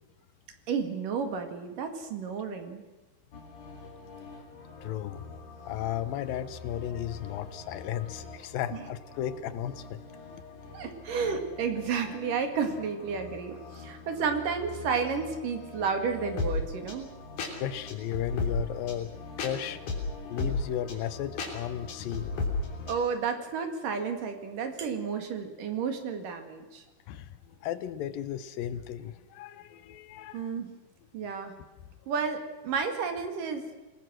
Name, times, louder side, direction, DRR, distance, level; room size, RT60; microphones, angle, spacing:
voice 1, 0.7-2.8 10.7-17.1 22.9-26.8 30.3-30.7 31.1-31.5 32.1-33.6, right 6 dB, 65° right, 7 dB, 3.7 m, -31 dB
sound 1, 3.3-23.0, left 3 dB, 60° left, 4.9 m, -38 dB
voice 2, 4.8-5.3 5.7-10.0 10.3-10.4 11.1-11.3 12.0-12.1 17.4-19.9 20.2-22.4 22.8-22.9 27.1-30.5, left 10 dB, 80° left, 14 dB, 2.6 m, -35 dB
27.5 x 19.5 x 6.3 m, 1.2 s
omnidirectional pair, 4.2 m